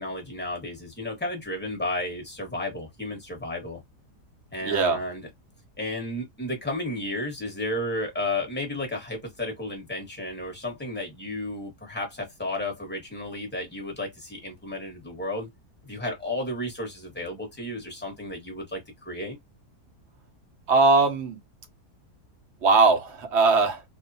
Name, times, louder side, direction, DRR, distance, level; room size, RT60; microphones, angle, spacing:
voice 1, 0.0-3.8 4.5-5.2 5.8-15.5 15.8-19.4, left 1 dB, 10° left, 1.0 m, -33 dB
voice 2, 4.6-5.0 20.7-21.4 22.6-23.8, right 3 dB, 55° right, 0.9 m, -20 dB
2.7 x 2.4 x 2.5 m
omnidirectional pair, 1.7 m